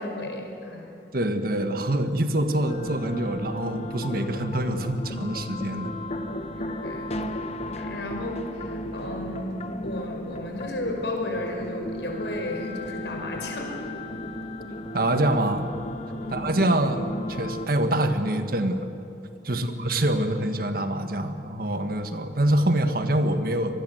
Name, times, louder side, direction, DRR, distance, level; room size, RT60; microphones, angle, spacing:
voice 1, 0.0-1.0 6.6-7.2 7.8-14.0 16.2-16.5 19.5-19.8, left 1 dB, 75° left, 2 dB, 5.4 m, -34 dB
voice 2, 1.1-5.9 14.9-15.7 16.3-18.9 19.4-23.7, right 1 dB, 55° right, 7 dB, 1.6 m, -25 dB
sound 1, 2.7-17.7, left 1 dB, 35° left, 1.3 m, -35 dB
25.0 x 20.0 x 7.9 m, 2.9 s
head